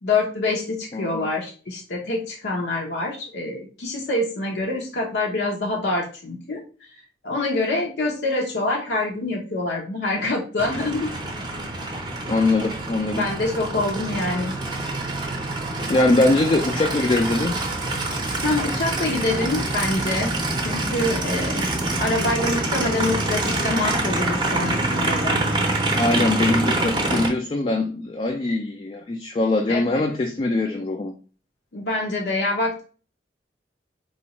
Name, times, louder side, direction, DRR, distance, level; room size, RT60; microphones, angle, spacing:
voice 1, 0.0-6.6 7.2-11.1 13.2-14.5 18.4-20.3 20.6-21.7 22.0-25.5 29.7-30.0 31.7-32.8, left 2 dB, 75° left, 0.7 m, -25 dB
voice 2, 0.9-1.3 12.3-13.3 15.9-17.6 26.0-31.1, left 2 dB, 30° left, 0.3 m, -22 dB
Aircraft, 10.6-27.3, right 2 dB, 25° right, 0.6 m, -26 dB
4.2 x 2.3 x 2.8 m
head